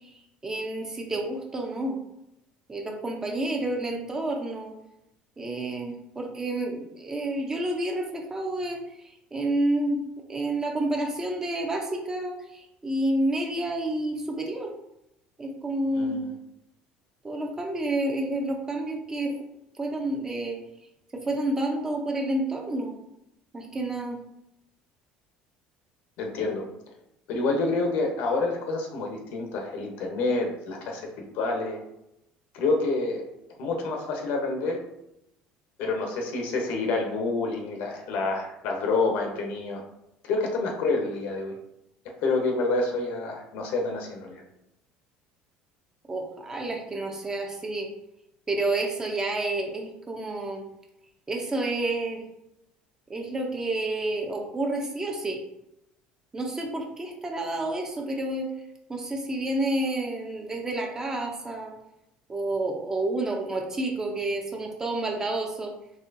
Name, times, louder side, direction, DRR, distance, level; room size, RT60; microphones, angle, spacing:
voice 1, 0.4-2.0 2.7-4.7 5.4-8.8 9.3-10.0 10.3-14.7 15.4-16.2 17.2-19.3 19.8-20.6 21.1-22.9 23.5-24.2 46.1-47.9 48.5-50.6 51.3-52.2 53.1-55.4 56.3-58.5 58.9-61.7 62.3-65.7, right 2 dB, 15° right, 1 dB, 0.7 m, -29 dB
voice 2, 15.9-16.3 26.2-26.7 27.3-31.8 32.5-33.3 33.6-34.8 35.8-39.8 40.2-41.6 42.2-44.4, left 3 dB, 70° left, 2 dB, 0.9 m, -28 dB
4.2 x 2.9 x 2.7 m, 0.84 s
cardioid pair, 125°, 3 cm